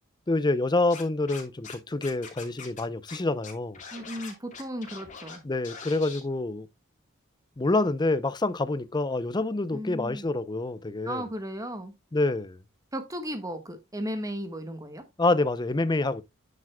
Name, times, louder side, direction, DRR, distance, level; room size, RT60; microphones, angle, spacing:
voice 1, 0.3-3.8 5.4-6.7 7.6-11.2 12.1-12.6 15.2-16.2, left 2 dB, 20° left, 0.6 m, -27 dB
Scratching (performance technique), 0.9-1.7 2.0-2.8 3.1-3.2 3.4-5.4 5.6-6.2, left 5 dB, 35° left, 2.8 m, -42 dB
voice 2, 3.9-5.4 9.7-10.2 11.0-11.9 12.9-15.0, equal, 15° right, 1.4 m, -35 dB
9.4 x 7.5 x 2.2 m
head